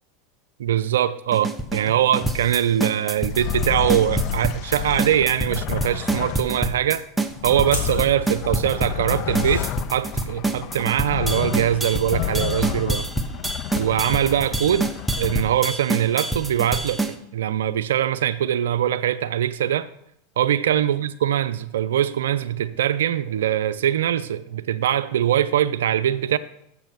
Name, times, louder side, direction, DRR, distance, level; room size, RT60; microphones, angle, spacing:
voice 1, 0.6-7.0 7.4-13.1 13.8-14.9 15.1-19.9 20.4-26.4, right 10 dB, 80° right, 0.3 m, -22 dB
sound 1, 1.3-17.1, right 2 dB, 5° right, 0.8 m, -26 dB
sound 2, 2.2-2.5 3.2-6.7 7.2-15.7, left 12 dB, 50° left, 0.3 m, -31 dB
sound 3, 7.6-13.4, left 2 dB, 90° left, 1.6 m, -40 dB
7.2 x 6.6 x 6.0 m
hypercardioid pair, 100°, 0 cm